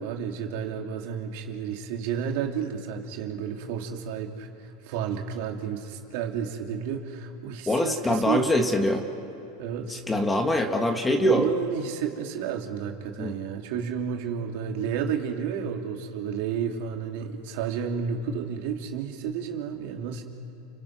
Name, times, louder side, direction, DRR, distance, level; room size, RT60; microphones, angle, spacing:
voice 1, 0.0-4.5 4.8-8.4 9.6-10.0 11.2-20.2, right 7 dB, 65° right, 2 dB, 3.0 m, -31 dB
voice 2, 7.7-9.0 9.9-11.5 13.2-13.4, left 1 dB, 10° left, 5 dB, 1.8 m, -24 dB
30.0 x 28.0 x 6.2 m, 2.9 s
supercardioid pair, 135°, 0 cm